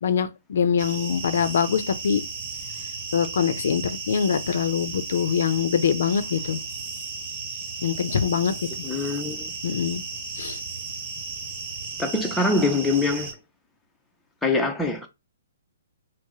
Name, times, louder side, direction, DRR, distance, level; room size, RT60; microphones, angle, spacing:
voice 1, 0.0-2.2 3.1-6.6 7.8-8.8 9.6-10.0 10.4-10.6, left 7 dB, 65° left, 0.5 m, -24 dB
sound 1, 0.8-13.3, right 4 dB, 40° right, 1.3 m, -35 dB
voice 2, 8.8-9.5 12.0-13.3 14.4-15.1, left 2 dB, 5° left, 0.6 m, -24 dB
4.6 x 2.0 x 2.9 m
hypercardioid pair, 155°, 0 cm